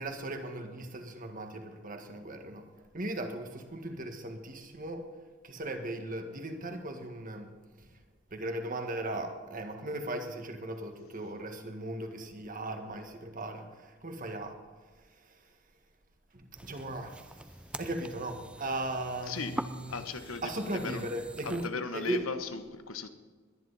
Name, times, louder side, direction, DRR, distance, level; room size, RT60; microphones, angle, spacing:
voice 1, 0.0-2.7 2.9-5.1 5.4-7.5 7.8-8.0 8.3-14.6 15.0-15.5 16.3-17.4 17.8-20.0 20.4-22.3, right 1 dB, 40° right, 5 dB, 1.6 m, -38 dB
sound 1, 16.5-21.7, right 1 dB, 5° right, 0.5 m, -44 dB
voice 2, 19.3-21.1 21.4-23.1, left 4 dB, 85° left, 9 dB, 1.1 m, -37 dB
21.0 x 10.5 x 4.1 m, 1.5 s
head